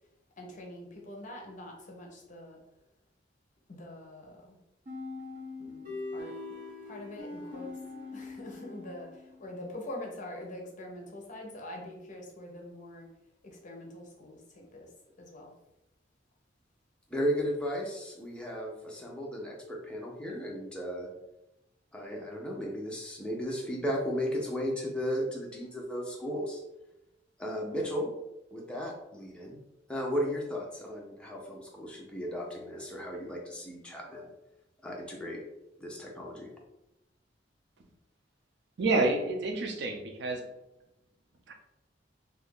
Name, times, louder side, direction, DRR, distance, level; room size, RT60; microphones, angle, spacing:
voice 1, 0.4-2.6 3.7-4.6 5.6-6.3 6.8-7.7 8.1-13.1 13.4-14.9 15.2-15.5, left 1 dB, 45° left, 1 dB, 0.7 m, -44 dB
sound 1, 4.9-9.5, left 3 dB, 45° right, 0.9 m, -42 dB
voice 2, 17.1-21.1 21.9-26.6 27.4-28.1 28.5-29.6 29.9-34.3 34.8-35.4 35.8-36.5, equal, 5° left, -2 dB, 0.6 m, -35 dB
voice 3, 38.8-40.4 41.5-41.6, right 2 dB, 65° right, 4 dB, 0.5 m, -28 dB
2.7 x 2.5 x 3.6 m, 0.90 s
head